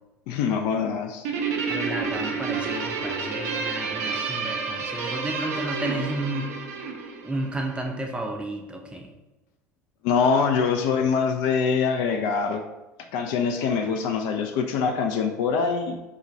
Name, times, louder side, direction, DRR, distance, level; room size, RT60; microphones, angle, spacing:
voice 1, 0.3-1.3 10.0-12.6 13.1-16.0, left 5 dB, 55° left, 5 dB, 0.3 m, -24 dB
Guitar, 1.2-7.9, right 5 dB, 65° right, 0.4 m, -30 dB
voice 2, 1.7-6.5 7.2-9.1, right 1 dB, 10° right, 1 dB, 0.5 m, -32 dB
4.5 x 2.2 x 2.5 m, 1.1 s
figure-of-eight pair, 65°, 9 cm